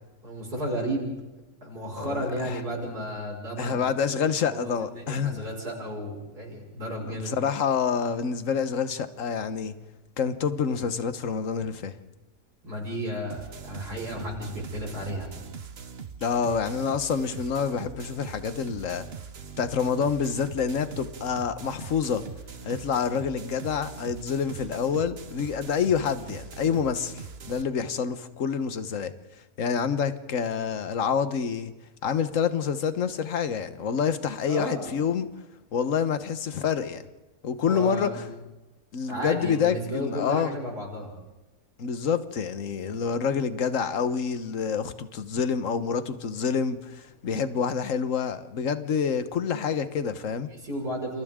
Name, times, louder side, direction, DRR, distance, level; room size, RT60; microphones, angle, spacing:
voice 1, 0.2-1.1 1.6-3.9 4.4-7.3 11.6-11.7 12.6-15.3 34.5-34.9 37.7-38.3 39.0-41.1 50.6-51.2, equal, 80° right, 6.4 m, -33 dB
voice 2, 2.0-2.6 3.6-5.5 7.1-9.7 10.2-12.0 16.2-19.1 19.6-22.2 22.6-29.1 29.6-31.7 32.0-35.3 35.7-37.0 37.4-38.2 38.9-40.6 41.8-50.5, left 6 dB, 55° left, 1.5 m, -27 dB
sound 1, 13.3-27.6, right 6 dB, 45° right, 1.2 m, -41 dB
29.0 x 28.0 x 3.8 m
omnidirectional pair, 1.7 m